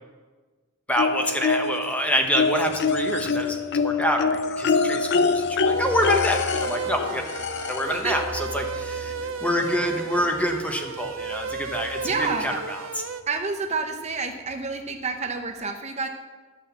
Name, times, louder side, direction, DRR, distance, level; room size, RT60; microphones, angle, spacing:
voice 1, 0.9-7.2 7.7-9.1 9.4-12.9, equal, 5° left, 3 dB, 1.1 m, -26 dB
sound 1, 1.0-1.9 2.4-8.0 9.3-9.4 9.7-9.8, left 4 dB, 55° left, 0.5 m, -25 dB
Fixed-wing aircraft airplane, 2.0-15.5, left 1 dB, 85° left, 2.1 m, -44 dB
sound 2, 5.7-13.2, right 5 dB, 85° right, 0.6 m, -33 dB
voice 2, 7.8-8.4 12.0-12.6 13.3-16.1, right 4 dB, 35° right, 5 dB, 0.7 m, -29 dB
12.0 x 6.4 x 7.1 m, 1.4 s
head